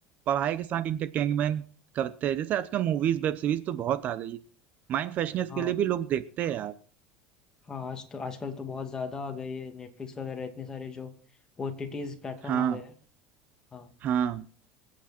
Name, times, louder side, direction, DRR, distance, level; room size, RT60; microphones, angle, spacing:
voice 1, 0.3-1.6 1.9-4.4 4.9-6.7 12.5-12.8 14.0-14.5, right 10 dB, 40° right, 0.8 m, -28 dB
voice 2, 7.7-11.1 11.6-12.9 13.7-13.9, left 5 dB, 20° left, 2.5 m, -37 dB
26.5 x 8.9 x 4.4 m
cardioid pair, 140°, 4 cm